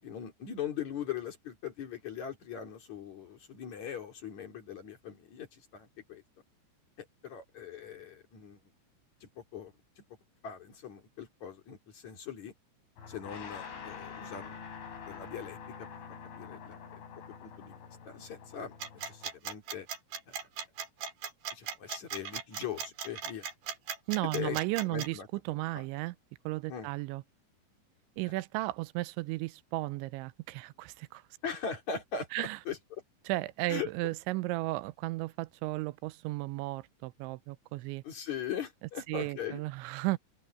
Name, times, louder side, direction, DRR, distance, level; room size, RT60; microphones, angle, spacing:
voice 1, 0.0-6.2 7.0-8.6 9.2-10.0 10.4-12.5 13.1-14.6 15.1-15.9 16.4-16.8 17.4-19.9 20.3-20.4 21.5-23.5 24.2-25.3 25.7-25.8 26.7-26.9 31.4-33.0 33.7-33.9 38.0-39.6, left 8 dB, 45° left, 3.9 m, -40 dB
sound 1, 13.0-19.3, left 6 dB, 85° left, 7.9 m, -46 dB
sound 2, 18.8-25.1, right 7 dB, 55° right, 5.1 m, -37 dB
voice 2, 24.1-25.2 25.5-26.2 26.5-27.2 28.2-31.2 32.3-32.6 33.3-38.0 39.1-40.2, right 20 dB, 90° right, 3.0 m, -34 dB
open air
omnidirectional pair, 5.3 m